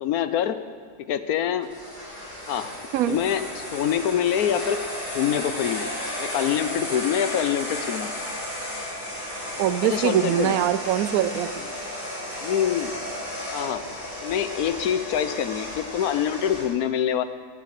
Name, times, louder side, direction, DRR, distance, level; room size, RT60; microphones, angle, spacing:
voice 1, 0.0-0.6 1.1-1.7 2.5-2.7 3.1-4.8 5.1-5.9 6.2-8.1 9.8-10.5 11.6-11.7 12.4-12.9 13.5-13.8 14.2-17.2, left 9 dB, 70° left, 12 dB, 1.2 m, -25 dB
sound 1, 1.6-16.7, left 1 dB, 30° left, 3.6 m, -33 dB
voice 2, 9.6-11.6, right 11 dB, 70° right, 13 dB, 1.0 m, -23 dB
17.0 x 7.3 x 7.6 m, 2.1 s
omnidirectional pair, 1.7 m